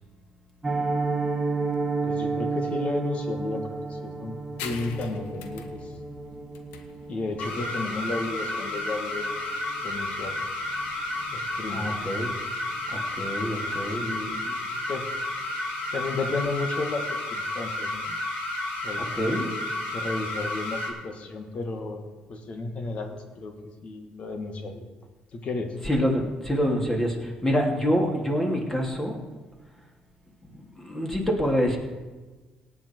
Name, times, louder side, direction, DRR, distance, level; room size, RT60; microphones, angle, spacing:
Piano, 0.6-11.5 11.8-12.0 12.3-12.5 12.8-13.1 13.4-13.5, right 3 dB, 20° right, 1.6 m, -32 dB
voice 1, 2.0-4.3 4.6-5.9 7.1-9.4 9.8-10.4 11.3-12.0 13.6-14.6 14.9-15.1 15.9-18.2 18.8-23.5 23.8-24.8 25.3-25.7, left 3 dB, 50° left, 5 dB, 2.0 m, -33 dB
sound 1, 4.6-11.7, left 7 dB, 90° left, 1.1 m, -44 dB
sound 2, 7.4-20.9, left 2 dB, 70° left, 3.6 m, -31 dB
voice 2, 11.7-12.3 12.9-14.0 19.1-19.4 25.8-29.2 30.5-31.8, equal, 15° left, 1 dB, 2.9 m, -26 dB
18.0 x 8.9 x 4.7 m, 1.3 s
cardioid pair, 90°, 3 cm